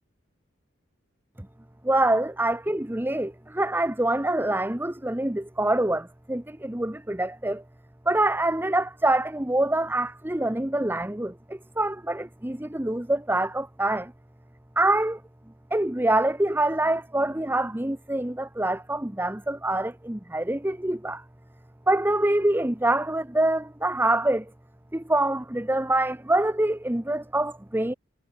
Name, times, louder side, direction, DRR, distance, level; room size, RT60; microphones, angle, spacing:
voice 1, 1.8-7.6 8.1-14.1 14.8-15.2 15.7-21.2 21.9-24.5 24.9-27.9, right 1 dB, 10° right, 0.9 m, -25 dB
head